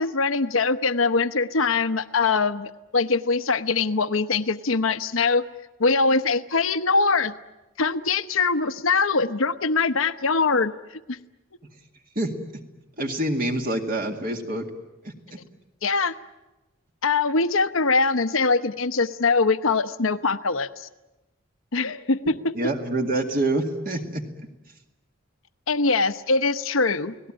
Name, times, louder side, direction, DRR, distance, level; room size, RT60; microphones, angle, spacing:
voice 1, 0.0-5.4 5.8-7.3 7.8-10.7 11.1-11.2 15.8-16.1 17.0-20.9 21.7-22.5 25.7-27.3, left 4 dB, 80° left, 11 dB, 1.0 m, -22 dB
voice 2, 13.0-14.6 15.0-15.1 22.5-24.2, right 1 dB, 45° right, 3 dB, 2.2 m, -26 dB
29.5 x 18.5 x 8.9 m, 1.1 s
head